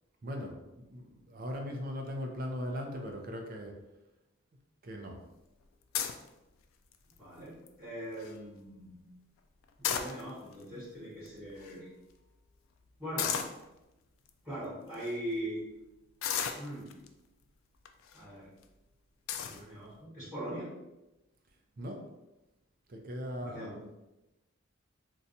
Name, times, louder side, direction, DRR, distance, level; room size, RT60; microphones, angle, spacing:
voice 1, 0.2-3.7 4.8-5.2 21.8-22.0 22.9-23.8, equal, 45° right, 2 dB, 0.5 m, -39 dB
sound 1, 5.9-6.3 6.9-7.2 7.7-7.8 8.0-8.3 9.6-10.5 11.3-11.4 11.6-11.7 13.2-13.6 14.3-14.4 14.9-15.1 16.2-17.1 17.9-18.2 18.6-18.7 19.3-19.6, left 8 dB, 70° left, 0.3 m, -34 dB
voice 2, 7.1-9.0 9.8-11.9 13.0-13.3 14.4-15.6 16.6-17.0 18.1-18.5 19.4-20.7 23.4-23.8, right 1 dB, 5° right, -14 dB, 1.3 m, -41 dB
2.6 x 2.3 x 4.0 m, 0.97 s
head